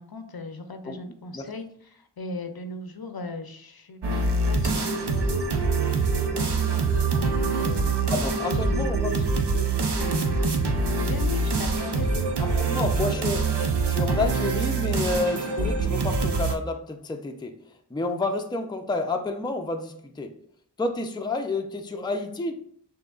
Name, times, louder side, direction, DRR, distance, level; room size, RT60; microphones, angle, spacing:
voice 1, 0.0-1.7 1.9-5.8 6.3-7.9 8.6-8.8 11.0-12.9, left 3 dB, 65° left, 7 dB, 0.6 m, -39 dB
sound 1, 4.0-16.6, right 3 dB, 75° right, 0.7 m, -25 dB
voice 2, 8.1-9.7 12.4-20.3 20.8-22.5, left 3 dB, 10° left, 5 dB, 0.4 m, -30 dB
6.1 x 2.8 x 2.3 m, 0.64 s
wide cardioid pair, 45°, 41 cm